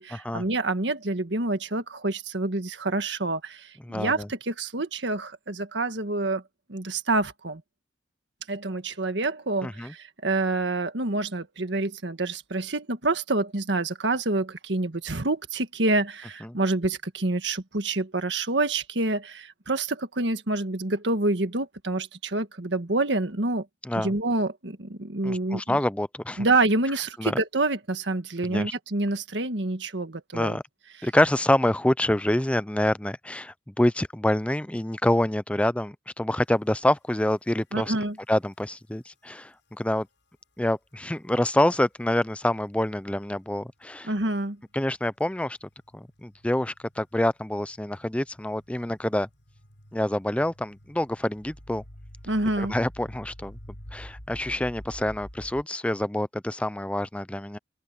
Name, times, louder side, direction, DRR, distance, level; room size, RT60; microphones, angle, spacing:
voice 1, 0.0-6.4 6.7-7.6 8.5-23.7 24.0-25.8 26.4-30.6 37.7-38.2 44.0-44.6 52.3-52.7, right 2 dB, 70° right, 1.7 m, -27 dB
voice 2, 3.9-4.3 9.6-9.9 16.4-16.6 23.8-24.1 25.2-26.5 27.2-27.4 28.4-28.7 30.3-30.6 31.0-37.9 38.3-40.1 40.6-44.1 44.7-49.3 49.9-51.8 52.6-53.6 53.9-57.6, left 1 dB, 5° left, 0.5 m, -26 dB
sound 1, 36.9-37.0 37.6-37.7 38.6-38.7 41.9-42.2 43.8-43.9 44.6-55.6, equal, 85° left, 7.2 m, -47 dB
open air
head